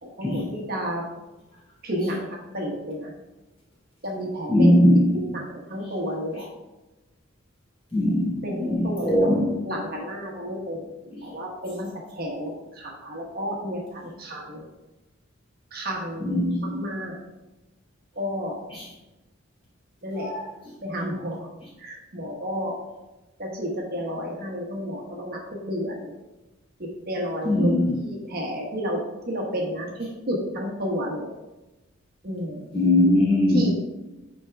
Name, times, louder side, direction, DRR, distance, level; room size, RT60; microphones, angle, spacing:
voice 1, 0.0-1.0 1.8-3.1 4.0-4.8 5.1-6.5 8.4-10.9 11.2-14.7 15.7-17.2 18.1-18.6 20.0-20.3 20.8-21.5 21.8-22.8 23.4-26.1 26.8-31.3 32.2-32.7 33.5-33.7, equal, 50° right, -1 dB, 1.2 m, -31 dB
voice 2, 4.5-5.1 7.9-9.5 16.2-16.7 20.3-20.4 27.4-27.9 32.7-33.6, left 1 dB, 30° left, -6 dB, 2.6 m, -20 dB
9.1 x 4.5 x 3.5 m, 1.0 s
head